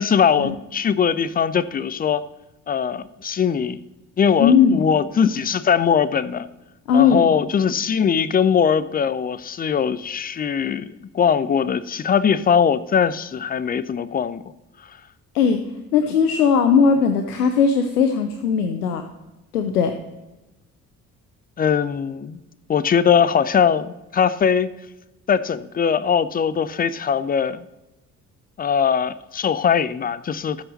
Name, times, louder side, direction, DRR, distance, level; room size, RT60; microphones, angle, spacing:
voice 1, 0.0-2.2 2.7-3.8 4.2-6.5 6.9-14.4 21.6-22.4 22.7-24.7 25.3-27.6 28.6-30.6, left 7 dB, 20° left, 0.5 m, -21 dB
voice 2, 4.4-4.8 6.9-7.3 15.3-15.6 15.9-19.0 19.5-20.0, left 6 dB, 85° left, 0.6 m, -18 dB
13.5 x 7.7 x 4.0 m
figure-of-eight pair, 45°, 44 cm